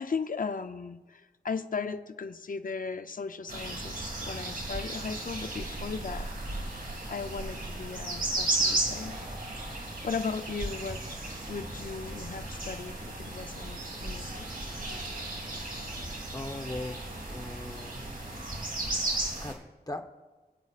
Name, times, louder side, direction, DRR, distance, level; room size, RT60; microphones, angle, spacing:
voice 1, 0.0-6.3 7.1-9.3 9.7-11.0 11.5-14.7, left 5 dB, 55° left, 9 dB, 0.6 m, -37 dB
sound 1, 3.5-19.5, right 2 dB, 55° right, 2.5 m, -35 dB
voice 2, 16.3-17.0 17.3-18.1 19.4-19.6 19.9-20.1, left 2 dB, 20° left, 5 dB, 1.0 m, -38 dB
25.0 x 8.4 x 2.5 m, 1.2 s
wide cardioid pair, 60°, 17 cm